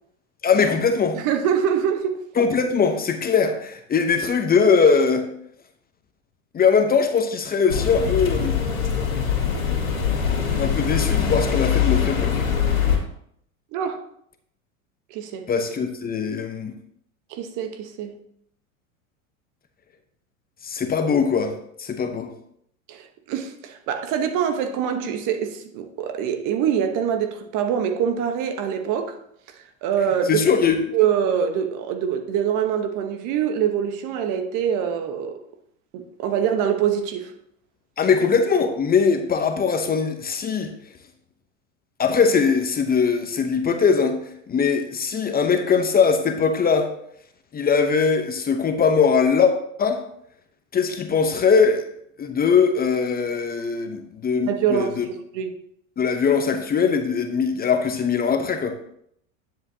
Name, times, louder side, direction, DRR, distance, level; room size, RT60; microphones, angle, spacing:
voice 1, 0.4-1.2 2.4-5.3 6.5-8.5 10.6-12.4 15.5-16.7 20.6-22.3 30.3-30.8 38.0-40.7 42.0-44.2 44.5-46.9 47.5-49.5 49.8-50.0 50.7-51.8 52.2-55.1 56.0-58.7, left 5 dB, 20° left, 0.8 m, -21 dB
voice 2, 1.1-2.2 13.7-14.0 15.1-15.5 17.3-18.2 22.9-29.2 29.8-30.4 30.9-35.4 35.9-37.3 54.4-55.5, right 8 dB, 50° right, 1.2 m, -24 dB
sound 1, 7.7-13.0, left 7 dB, 90° left, 2.3 m, -22 dB
9.4 x 7.7 x 2.8 m
hypercardioid pair, 95°, 40 cm